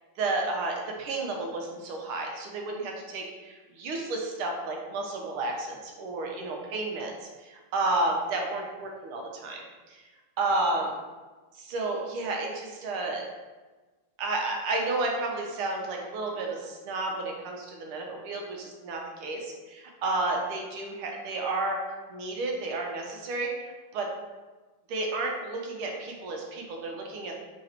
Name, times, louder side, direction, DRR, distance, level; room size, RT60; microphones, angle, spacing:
voice 1, 0.2-9.6 9.9-10.0 10.4-10.9 11.6-13.3 14.2-21.8 22.1-24.1 24.9-27.3, right 2 dB, 80° right, 1 dB, 1.6 m, -31 dB
3.8 x 3.2 x 4.3 m, 1.3 s
omnidirectional pair, 2.4 m